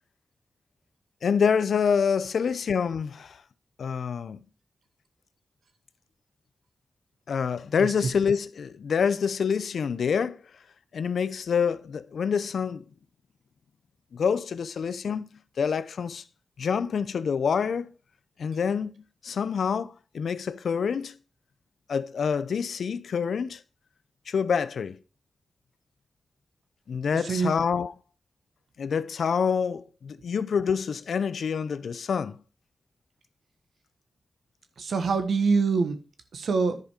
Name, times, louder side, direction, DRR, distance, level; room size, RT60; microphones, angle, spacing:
voice 1, 1.2-3.4 3.8-4.4 7.3-10.4 10.9-12.8 14.1-15.3 15.6-16.2 16.6-17.9 18.4-18.9 19.2-21.1 21.9-23.6 24.3-25.0 26.9-27.9 28.8-32.4, left 6 dB, 85° left, 0.5 m, -27 dB
voice 2, 34.8-36.0 36.3-36.8, right 4 dB, 85° right, 1.3 m, -24 dB
10.5 x 5.2 x 4.8 m
wide cardioid pair, 80°, 0 cm